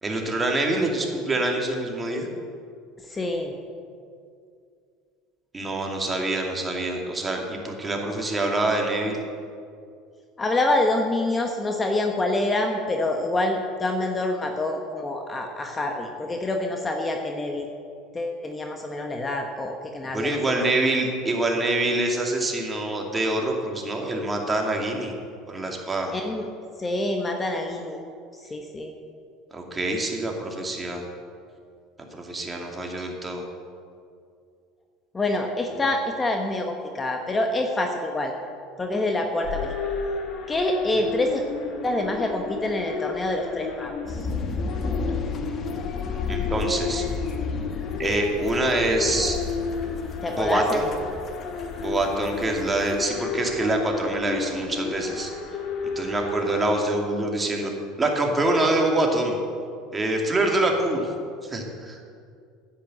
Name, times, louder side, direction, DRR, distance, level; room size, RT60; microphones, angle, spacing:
voice 1, 0.0-2.3 5.5-9.2 20.1-25.1 25.5-26.1 29.5-31.0 32.1-33.4 35.7-35.8 46.3-47.0 48.0-49.4 50.3-50.9 51.8-55.3 56.0-57.7 58.0-59.4 59.9-61.1 61.4-62.0, right 2 dB, 20° right, 1 dB, 2.4 m, -25 dB
voice 2, 3.1-3.5 10.4-17.6 18.1-20.6 26.1-26.5 26.8-28.0 28.5-28.9 35.1-38.3 38.8-39.7 40.5-41.4 41.8-44.2 50.2-50.8, left 2 dB, 20° left, 3 dB, 1.2 m, -26 dB
sound 1, 39.4-56.8, left 5 dB, 55° left, 2.0 m, -33 dB
sound 2, 44.1-53.1, left 4 dB, 40° left, 1.3 m, -33 dB
10.0 x 9.2 x 7.9 m, 2.3 s
supercardioid pair, 95°, 0 cm